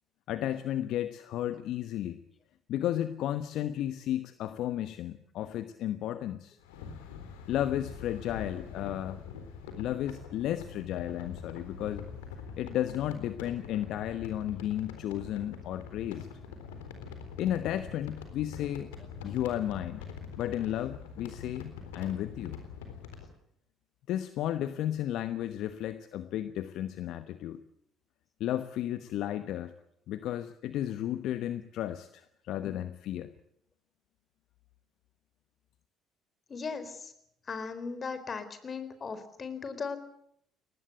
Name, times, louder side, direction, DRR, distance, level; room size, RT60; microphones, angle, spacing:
voice 1, 0.3-2.2 2.7-6.6 7.5-9.2 9.8-12.1 12.6-16.3 17.4-18.9 19.2-20.0 20.4-22.6 24.1-27.6 28.4-29.7 30.1-33.3, left 12 dB, 65° left, 12 dB, 1.1 m, -33 dB
sound 1, 6.6-23.3, left 6 dB, 80° left, 3.9 m, -44 dB
voice 2, 36.5-37.1 37.5-40.0, left 5 dB, 40° left, 11 dB, 4.2 m, -37 dB
23.0 x 19.0 x 8.1 m, 0.72 s
hypercardioid pair, 55°, 0 cm